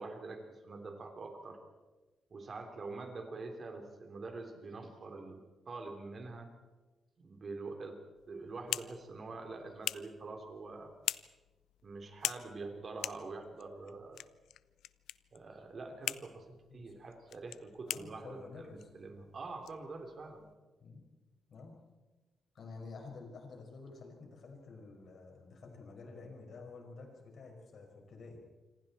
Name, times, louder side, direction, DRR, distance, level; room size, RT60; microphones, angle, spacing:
voice 1, 0.0-1.6 2.3-6.5 7.2-8.0 8.3-10.9 11.8-14.2 15.3-20.5, right 3 dB, 35° right, 4 dB, 3.5 m, -45 dB
sound 1, 8.2-20.5, left 12 dB, 85° left, 0.6 m, -44 dB
voice 2, 17.8-18.9 20.8-21.1 21.5-21.7 22.5-28.4, left 3 dB, 45° left, 2 dB, 5.9 m, -50 dB
27.5 x 25.5 x 4.4 m, 1.2 s
cardioid pair, 160°, 0 cm